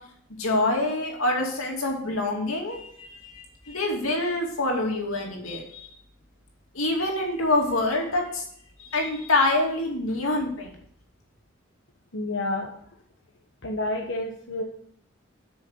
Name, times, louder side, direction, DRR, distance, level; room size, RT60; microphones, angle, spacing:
voice 1, 0.4-5.9 6.7-8.4 8.8-10.7, left 2 dB, 90° left, 0 dB, 2.7 m, -26 dB
voice 2, 12.1-12.7 13.6-14.6, left 2 dB, 65° left, -1 dB, 1.2 m, -29 dB
8.9 x 6.4 x 6.4 m, 0.63 s
head